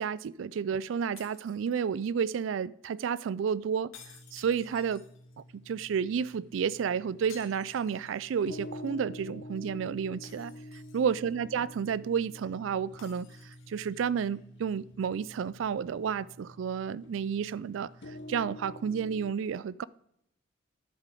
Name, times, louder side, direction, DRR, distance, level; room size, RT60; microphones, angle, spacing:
voice 1, 0.0-3.9 4.3-5.0 5.7-13.3 13.7-19.9, right 7 dB, 65° right, 0.3 m, -31 dB
sound 1, 1.2-2.2 3.9-5.5 7.3-8.5 8.8-8.9 10.2-11.3 13.0-13.9, left 7 dB, 85° left, 1.9 m, -55 dB
sound 2, 4.0-19.3, left 1 dB, 65° left, 1.0 m, -48 dB
10.5 x 7.6 x 5.0 m
head